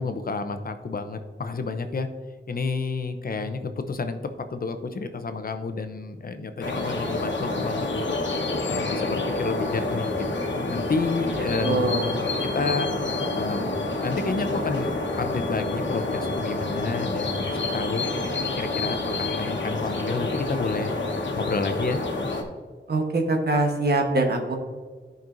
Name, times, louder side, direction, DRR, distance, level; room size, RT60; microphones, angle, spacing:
voice 1, 0.0-2.1 2.5-8.1 8.7-10.1 10.4-12.9 13.3-13.8 14.0-18.0 18.5-20.9 21.3-22.0, left 4 dB, 50° left, 8 dB, 0.7 m, -30 dB
sound 1, 6.6-22.4, left 2 dB, 85° left, 1.1 m, -28 dB
voice 2, 11.6-12.1 22.9-24.6, right 2 dB, 60° right, 3 dB, 1.2 m, -23 dB
13.5 x 5.3 x 2.6 m, 1.5 s
wide cardioid pair, 90°, 19 cm